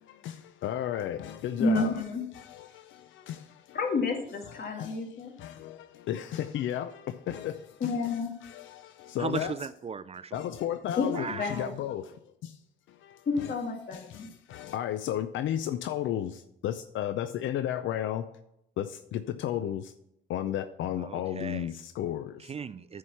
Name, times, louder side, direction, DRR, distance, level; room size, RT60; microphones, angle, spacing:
voice 1, 0.0-2.0 2.3-3.8 4.5-5.1 5.4-9.5 10.3-12.6 12.9-13.5 13.9-18.3 18.8-19.9 20.3-22.5, left 11 dB, 75° left, 11 dB, 0.5 m, -34 dB
voice 2, 1.6-2.2 3.7-5.3 7.8-8.3 11.0-11.7 13.3-14.3, left 3 dB, 50° left, 3 dB, 2.1 m, -30 dB
voice 3, 9.2-10.4 11.1-11.7 21.0-21.7 22.5-23.0, right 6 dB, 30° right, 15 dB, 0.4 m, -37 dB
9.9 x 4.8 x 5.7 m, 0.81 s
cardioid pair, 90°, 20 cm